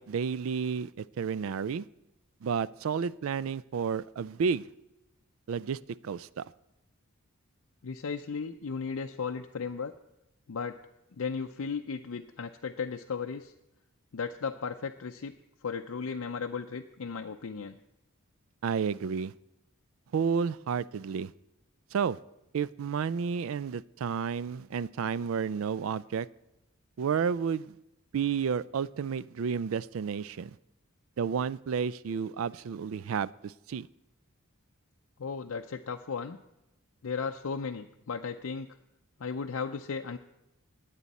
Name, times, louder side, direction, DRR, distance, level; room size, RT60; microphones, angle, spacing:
voice 1, 0.0-1.9 2.4-4.7 5.5-6.4 18.6-19.3 20.1-21.3 21.9-22.2 22.5-26.3 27.0-27.8 28.1-30.6 31.2-33.9, right 6 dB, 65° right, 19 dB, 0.3 m, -31 dB
voice 2, 7.8-9.9 10.5-10.8 11.2-13.5 14.1-15.3 15.6-17.8 35.2-36.4 37.0-38.7 39.2-40.2, left 5 dB, 70° left, 4 dB, 0.5 m, -35 dB
20.5 x 8.3 x 4.1 m, 0.90 s
head